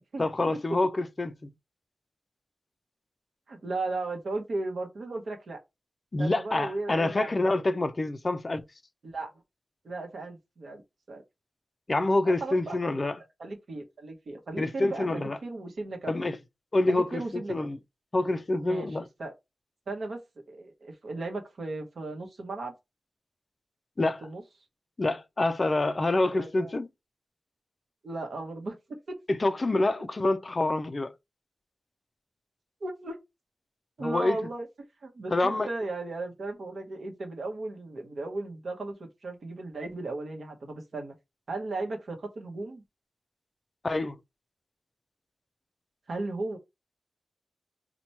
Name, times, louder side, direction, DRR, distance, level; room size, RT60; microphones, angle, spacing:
voice 1, 0.2-1.5 6.1-8.7 11.9-13.1 14.6-15.4 16.1-16.4 16.7-17.8 18.1-19.0 24.0-24.2 25.0-26.9 29.3-31.1 34.0-34.4 35.3-35.7 43.8-44.2, left 2 dB, 30° left, 0.3 m, -27 dB
voice 2, 3.5-5.6 6.2-7.5 9.0-9.3 9.8-10.8 11.1-11.2 12.2-13.0 13.4-16.3 16.9-17.7 18.6-18.9 19.2-19.3 19.9-22.7 24.2-24.4 26.2-26.8 28.0-29.2 32.8-33.2 34.0-34.7 35.0-41.1 41.5-42.8 46.1-46.6, right 2 dB, 65° right, 0.8 m, -36 dB
2.9 x 2.1 x 4.2 m
wide cardioid pair, 140°, 0 cm